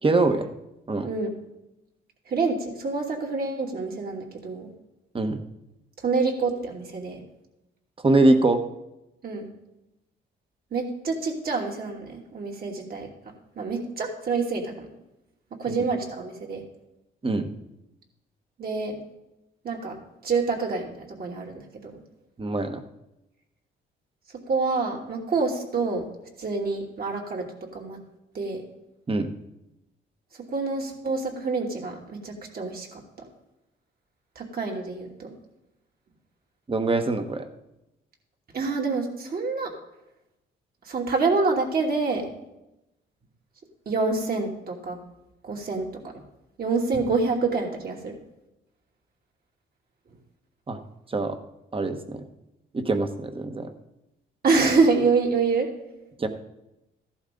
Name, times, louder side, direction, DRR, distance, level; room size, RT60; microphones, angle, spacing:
voice 1, 0.0-0.5 0.9-1.1 5.1-5.4 8.0-8.6 15.7-15.8 17.2-17.5 22.4-22.8 29.1-29.3 36.7-37.5 50.7-50.8 51.1-51.4 51.7-52.2 52.7-53.7 56.2-56.3, right 2 dB, 25° right, 8 dB, 1.3 m, -23 dB
voice 2, 2.3-4.7 6.0-7.2 9.2-9.5 10.7-13.1 13.6-14.9 15.6-16.6 18.6-19.0 19.6-22.0 24.5-26.1 26.4-27.5 27.7-28.0 28.3-28.6 30.5-33.3 34.3-35.3 38.5-39.7 40.8-42.3 43.9-45.0 45.4-46.1 46.6-48.2 54.4-55.7, right 4 dB, 50° right, 0 dB, 2.8 m, -27 dB
14.5 x 11.5 x 3.9 m, 0.91 s
cardioid pair, 90°, 20 cm